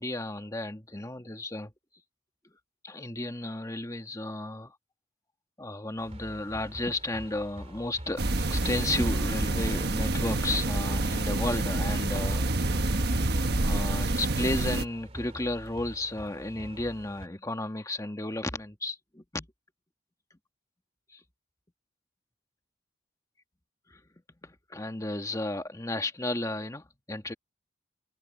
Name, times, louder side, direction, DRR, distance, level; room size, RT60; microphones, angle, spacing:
voice 1, 0.0-1.7 2.8-4.7 5.6-12.5 13.3-13.4 13.6-19.5 21.1-21.2 24.4-27.3, left 2 dB, 20° left, 1.7 m, -33 dB
sound 1, 6.0-17.3, right 1 dB, 35° right, 2.6 m, -45 dB
sound 2, 8.2-14.8, right 2 dB, 60° right, 1.3 m, -27 dB
head